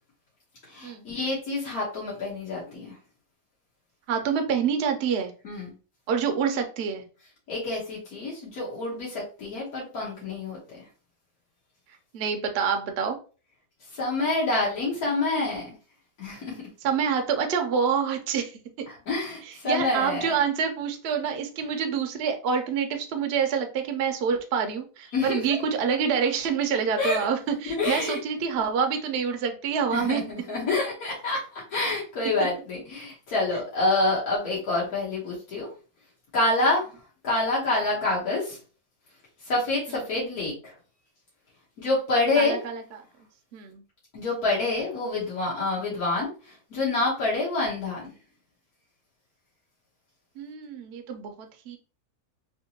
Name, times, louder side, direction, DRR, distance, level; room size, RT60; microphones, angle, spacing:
voice 1, 0.7-3.0 5.4-5.7 7.5-10.6 13.9-15.7 16.2-16.6 19.1-20.3 25.1-25.6 27.0-27.2 27.8-28.5 29.9-35.7 36.3-36.9 37.2-38.6 39.4-40.7 41.8-42.6 44.1-48.1, left 2 dB, 75° left, -6 dB, 1.7 m, -27 dB
voice 2, 4.1-5.3 6.1-7.0 12.1-13.2 16.8-18.9 19.5-30.2 42.3-43.0 43.5-43.8 45.8-46.0 50.4-51.8, right 6 dB, 60° right, 5 dB, 0.7 m, -27 dB
3.6 x 2.9 x 2.8 m, 0.36 s
omnidirectional pair, 1.6 m